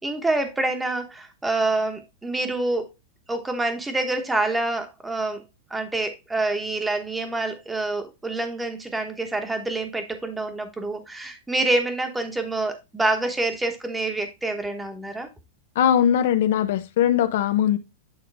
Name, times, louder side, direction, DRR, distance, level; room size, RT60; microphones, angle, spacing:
voice 1, 0.0-2.9 3.3-5.4 5.7-15.3, right 2 dB, 5° right, 1.1 m, -27 dB
voice 2, 15.8-17.8, left 10 dB, 65° left, 0.8 m, -20 dB
9.0 x 3.7 x 3.4 m
supercardioid pair, 155°, 0 cm